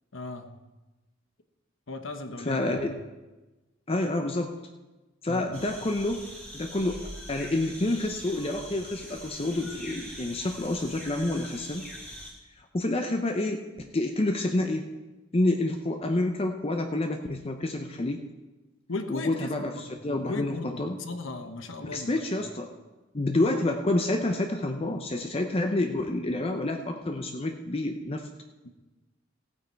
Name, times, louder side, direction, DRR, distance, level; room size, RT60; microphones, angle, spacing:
voice 1, 0.1-0.5 1.9-2.9 5.3-5.5 18.9-22.2 28.6-28.7, left 2 dB, 80° left, 7 dB, 1.1 m, -37 dB
voice 2, 2.4-2.9 3.9-4.5 5.2-6.2 6.5-7.0 7.3-11.9 12.7-14.9 15.3-18.2 19.1-21.0 21.8-22.7 23.1-28.3, left 2 dB, 30° left, 4 dB, 0.6 m, -28 dB
sound 1, 5.5-12.3, equal, 5° left, 2.4 m, -43 dB
15.5 x 8.6 x 4.5 m, 1.1 s
head